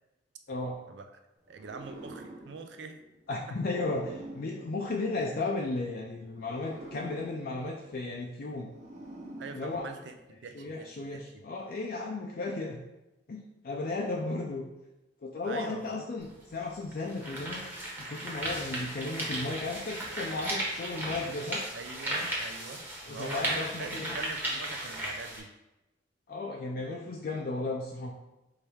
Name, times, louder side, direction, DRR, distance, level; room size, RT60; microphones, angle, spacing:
voice 1, 0.5-0.8 3.3-8.7 9.5-9.9 10.5-12.8 13.3-14.6 15.2-17.6 18.0-21.6 23.1-24.2 26.3-28.1, left 2 dB, 50° left, -1 dB, 0.4 m, -35 dB
sound 1, 1.5-5.6 6.3-10.3, right 1 dB, 40° right, 0.9 m, -48 dB
voice 2, 1.5-3.0 3.3-3.4 9.4-10.1 10.4-11.2 15.4-16.1 21.7-25.5, right 4 dB, 65° right, 6 dB, 0.5 m, -43 dB
sound 2, 16.2-16.3 16.9-25.4, right 1 dB, 10° right, 1.0 m, -35 dB
4.5 x 3.3 x 3.4 m, 0.97 s
head